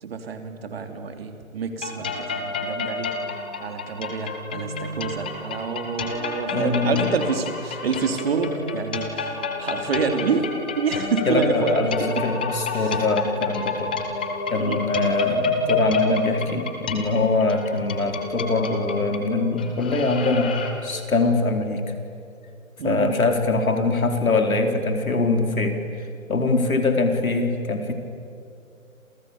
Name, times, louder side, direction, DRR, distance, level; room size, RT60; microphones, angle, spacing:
voice 1, 0.0-3.1 3.6-10.5 10.7-12.2 12.8-13.0 14.6-14.8 22.8-23.1, right 5 dB, 45° right, 6 dB, 3.3 m, -27 dB
sound 1, 1.8-20.7, left 3 dB, 5° left, 0.7 m, -29 dB
voice 2, 6.5-7.1 11.3-13.9 14.5-20.6 20.8-21.8 22.8-25.8 26.3-27.9, left 3 dB, 80° left, 4 dB, 4.5 m, -23 dB
29.5 x 28.0 x 7.1 m, 2.5 s
figure-of-eight pair, 155°, 41 cm